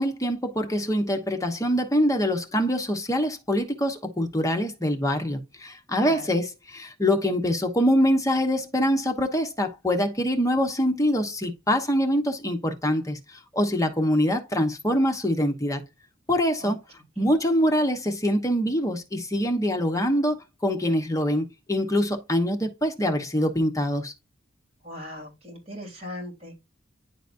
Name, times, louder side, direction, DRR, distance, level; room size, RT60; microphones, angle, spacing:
voice 1, 0.0-15.8 16.3-16.8 17.2-24.1, equal, 15° left, 1.1 m, -24 dB
voice 2, 24.8-26.6, left 1 dB, 30° right, 3.5 m, -38 dB
10.5 x 4.0 x 2.6 m
head